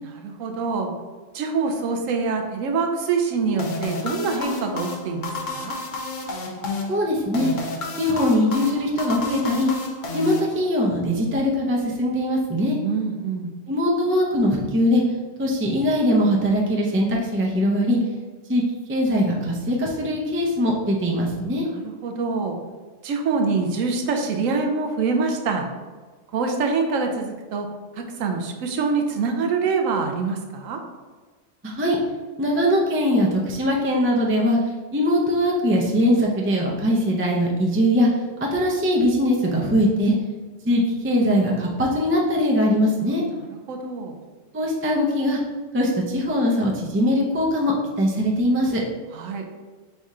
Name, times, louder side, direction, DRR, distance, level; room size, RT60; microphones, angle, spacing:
voice 1, 0.0-0.9 1.3-5.7 12.8-13.5 21.7-22.6 23.0-25.7 26.3-27.7 27.9-30.8 43.7-44.2 49.1-49.5, right 4 dB, 90° right, 3 dB, 1.0 m, -25 dB
sound 1, 3.6-11.0, left 3 dB, 80° left, 1.1 m, -31 dB
voice 2, 6.9-7.5 8.0-9.7 10.1-12.8 13.7-15.0 15.4-18.0 18.5-18.6 18.9-21.7 31.6-32.0 32.4-34.6 34.9-38.1 38.4-40.1 40.6-43.2 44.5-45.4 45.7-48.8, equal, 20° right, -2 dB, 0.3 m, -21 dB
4.2 x 3.5 x 3.6 m, 1.4 s
omnidirectional pair, 1.3 m